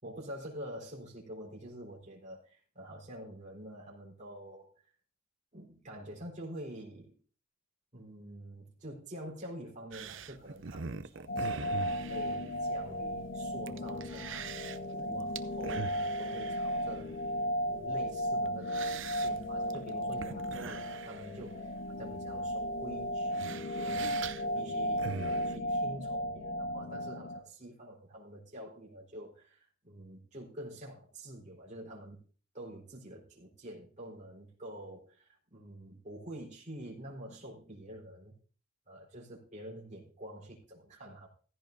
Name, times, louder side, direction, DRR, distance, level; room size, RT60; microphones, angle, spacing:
voice 1, 0.0-4.7 5.5-7.1 7.9-14.8 15.0-17.1 17.7-24.3 24.5-32.2 32.5-38.3 38.9-41.3, right 1 dB, 35° right, 4.3 m, -47 dB
sound 1, 9.9-25.6, right 5 dB, 60° right, 0.7 m, -44 dB
sound 2, 11.3-27.4, equal, 60° left, 1.3 m, -35 dB
16.0 x 15.5 x 2.7 m
head